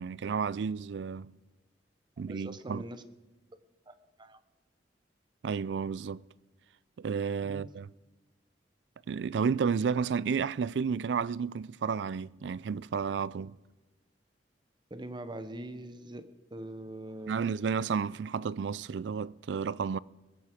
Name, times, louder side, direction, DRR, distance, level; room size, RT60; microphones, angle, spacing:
voice 1, 0.0-1.3 2.2-2.8 5.4-6.2 7.0-7.9 9.1-13.6 17.3-20.0, right 6 dB, 75° right, 0.4 m, -32 dB
voice 2, 2.3-3.0 3.9-4.4 7.4-7.7 14.9-17.5, right 1 dB, 25° right, 0.9 m, -43 dB
21.5 x 9.2 x 5.1 m
head